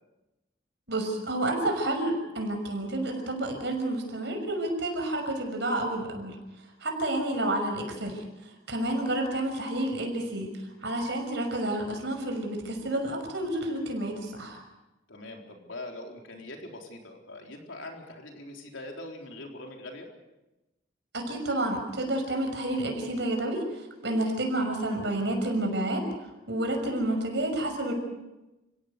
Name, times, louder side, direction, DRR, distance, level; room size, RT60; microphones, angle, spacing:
voice 1, 0.9-6.4 6.8-8.2 8.7-10.5 10.8-14.6 21.1-26.0 26.5-27.9, right 1 dB, 60° right, 4 dB, 6.0 m, -30 dB
voice 2, 15.1-20.1, left 2 dB, 80° left, 2 dB, 4.0 m, -42 dB
30.0 x 17.0 x 6.8 m, 1.0 s
head